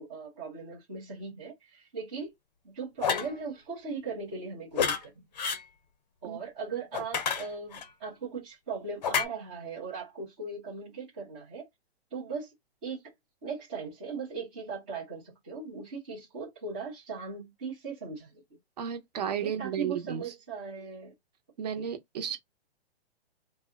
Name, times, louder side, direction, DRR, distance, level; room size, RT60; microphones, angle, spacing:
voice 1, 0.0-2.3 2.6-5.1 6.2-11.7 12.1-12.5 12.8-13.0 13.4-18.4 19.4-21.1 21.7-21.9, right 5 dB, 10° right, 0.4 m, -39 dB
sound 1, 3.0-3.3 4.7-5.0 5.4-5.6 6.9-7.9 9.0-9.3, left 6 dB, 40° left, 0.5 m, -28 dB
voice 2, 18.8-20.2 21.6-22.4, right 8 dB, 40° right, 0.7 m, -33 dB
2.7 x 2.1 x 3.5 m
hypercardioid pair, 160°, 32 cm